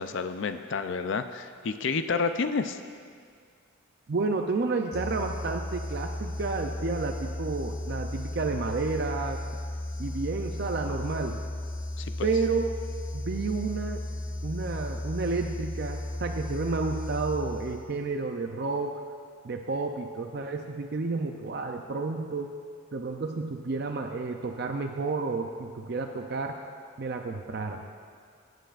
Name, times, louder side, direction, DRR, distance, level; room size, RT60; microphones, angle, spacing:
voice 1, 0.0-2.8 12.0-12.3, left 4 dB, 60° left, 9 dB, 0.4 m, -30 dB
voice 2, 4.1-9.4 10.0-11.4 12.2-12.7 13.1-14.0 14.4-19.0 19.4-22.5 22.9-26.6 27.0-27.8, right 3 dB, 50° right, 4 dB, 0.5 m, -31 dB
sound 1, 4.9-18.0, left 1 dB, 85° left, 0.9 m, -35 dB
19.0 x 9.1 x 2.5 m, 2.2 s
head